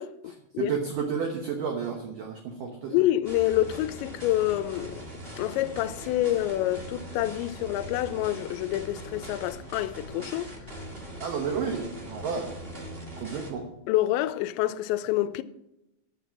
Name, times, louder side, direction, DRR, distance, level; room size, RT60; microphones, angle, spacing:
voice 1, 0.0-0.7 2.9-5.1 5.4-10.8 13.9-15.4, left 14 dB, 85° left, 2.9 m, -27 dB
voice 2, 0.6-2.9 11.2-12.5 13.2-13.7, right 6 dB, 65° right, 2.3 m, -31 dB
sound 1, 3.2-13.5, right 1 dB, 25° right, 1.2 m, -41 dB
10.0 x 9.5 x 5.9 m
omnidirectional pair, 5.1 m